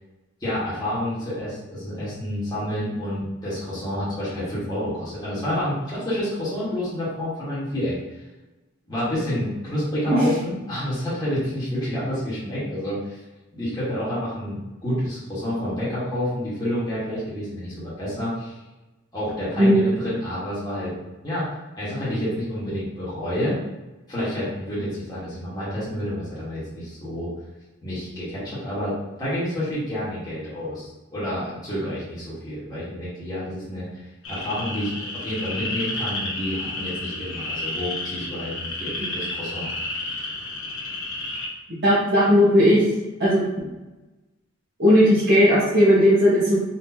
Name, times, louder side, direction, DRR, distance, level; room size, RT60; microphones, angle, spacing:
voice 1, 0.4-8.2 8.9-13.2 13.5-18.6 19.1-20.9 21.2-21.5 21.7-23.5 24.1-27.3 27.8-39.9, equal, 20° left, -11 dB, 1.5 m, -29 dB
sound 1, 34.2-41.5, left 2 dB, 80° left, 1.0 m, -31 dB
voice 2, 41.8-42.8 43.2-43.7 44.8-46.6, equal, 55° right, -11 dB, 1.2 m, -17 dB
4.1 x 3.4 x 2.8 m, 1.1 s
head